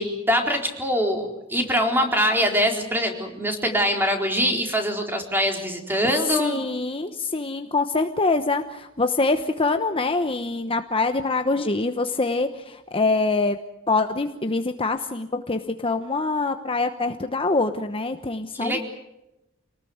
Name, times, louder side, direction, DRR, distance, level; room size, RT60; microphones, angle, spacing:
voice 1, 0.0-6.6 18.5-18.8, equal, 10° right, 3 dB, 4.1 m, -23 dB
voice 2, 6.2-13.6 13.9-18.8, left 3 dB, 25° left, 7 dB, 1.0 m, -24 dB
27.5 x 19.5 x 8.0 m, 0.93 s
head